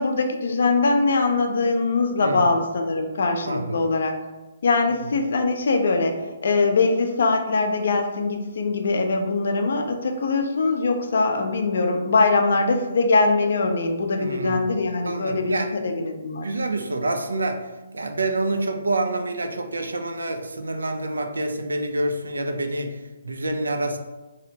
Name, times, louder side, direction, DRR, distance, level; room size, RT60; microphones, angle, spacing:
voice 1, 0.0-4.1 4.6-6.1 6.4-16.5, left 3 dB, 65° left, 4 dB, 0.4 m, -22 dB
voice 2, 3.4-3.8 4.9-5.0 14.2-14.6 15.0-15.7 16.4-24.0, right 2 dB, 85° right, 5 dB, 0.3 m, -27 dB
2.7 x 2.1 x 2.7 m, 1.2 s
hypercardioid pair, 140°, 0 cm